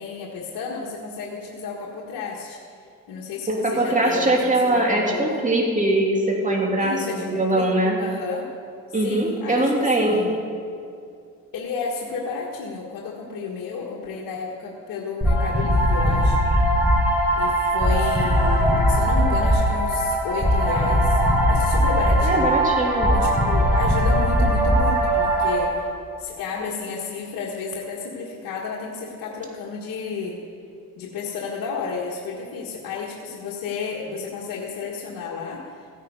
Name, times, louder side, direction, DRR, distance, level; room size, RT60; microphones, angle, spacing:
voice 1, 0.0-2.6 3.1-5.4 6.8-8.5 9.0-10.4 11.5-16.4 17.3-21.2 21.5-22.5 23.1-25.9 26.2-30.4 31.0-35.9, left 5 dB, 75° left, -3 dB, 1.7 m, -32 dB
voice 2, 3.5-8.0 8.9-10.3 22.2-23.1, right 1 dB, 20° right, -1 dB, 2.9 m, -22 dB
sound 1, 15.2-25.6, equal, 5° right, 4.0 m, -20 dB
16.0 x 9.8 x 5.4 m, 2.3 s
cardioid pair, 85°, 34 cm